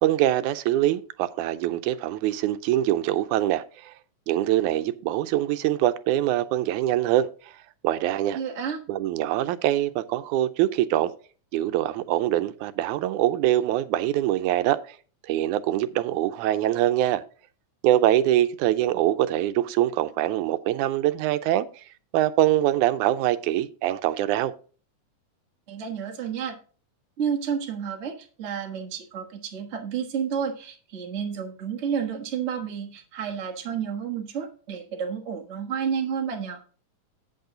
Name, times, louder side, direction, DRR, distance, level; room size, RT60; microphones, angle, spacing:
voice 1, 0.0-3.9 4.3-7.5 7.8-8.4 8.9-11.1 11.5-15.0 15.3-17.2 17.8-21.8 22.1-24.5, right 13 dB, 85° right, 2.0 m, -24 dB
voice 2, 8.3-8.8 25.7-26.6 27.2-36.6, right 7 dB, 35° right, 1.0 m, -30 dB
8.4 x 7.9 x 3.8 m
omnidirectional pair, 3.4 m